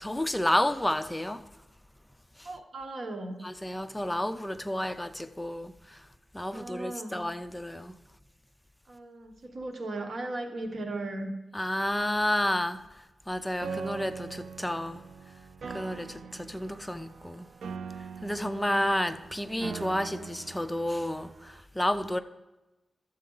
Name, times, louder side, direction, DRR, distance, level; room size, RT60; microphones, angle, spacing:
voice 1, 0.0-1.4 2.4-2.5 3.4-6.1 6.3-7.9 11.5-15.0 15.7-17.5 18.0-22.2, left 1 dB, 10° left, 0.5 m, -31 dB
voice 2, 2.4-3.4 6.5-7.2 8.9-11.3, right 2 dB, 60° right, 1.3 m, -37 dB
Piano, 13.6-21.6, right 5 dB, 85° right, 0.4 m, -42 dB
12.5 x 7.4 x 3.9 m
wide cardioid pair, 90°, 0 cm